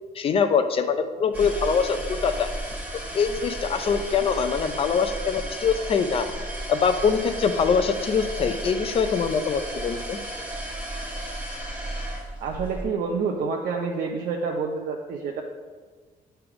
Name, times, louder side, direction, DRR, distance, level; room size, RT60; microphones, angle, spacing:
voice 1, 0.1-2.5 3.1-6.3 6.7-10.2, left 6 dB, 40° left, 9 dB, 0.5 m, -23 dB
sound 1, 1.3-12.8, right 1 dB, 10° right, 1.3 m, -34 dB
voice 2, 12.4-15.4, right 5 dB, 70° right, 0 dB, 0.7 m, -28 dB
8.6 x 3.4 x 5.9 m, 1.5 s
cardioid pair, 175°, 15 cm